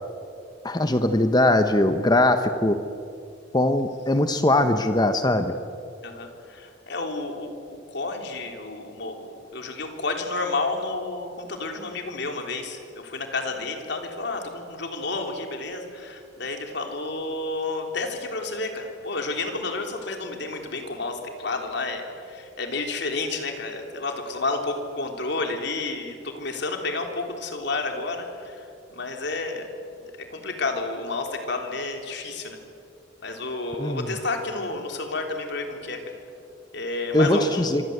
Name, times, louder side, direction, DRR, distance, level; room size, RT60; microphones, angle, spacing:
voice 1, 0.6-2.8 3.5-5.6 33.8-34.1 37.1-37.8, left 1 dB, 20° left, 8 dB, 1.0 m, -21 dB
voice 2, 6.0-29.7 30.0-32.6 33.2-36.0 36.7-37.7, left 3 dB, 60° left, 4 dB, 3.7 m, -31 dB
26.0 x 25.5 x 8.1 m, 2.5 s
head